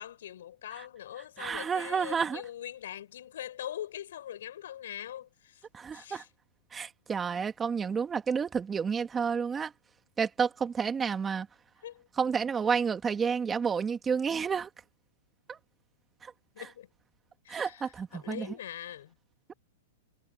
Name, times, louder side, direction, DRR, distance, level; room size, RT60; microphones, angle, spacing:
voice 1, 0.0-5.7 5.9-6.3 11.8-12.1 16.5-16.9 17.4-19.2, left 11 dB, 75° left, 5.6 m, -42 dB
voice 2, 1.4-2.4 5.7-6.2 6.7-9.7 10.2-11.5 12.2-14.7 15.5-15.6 16.2-16.3 17.5-18.5, right 6 dB, 20° right, 2.2 m, -30 dB
hypercardioid pair, 125°, 0 cm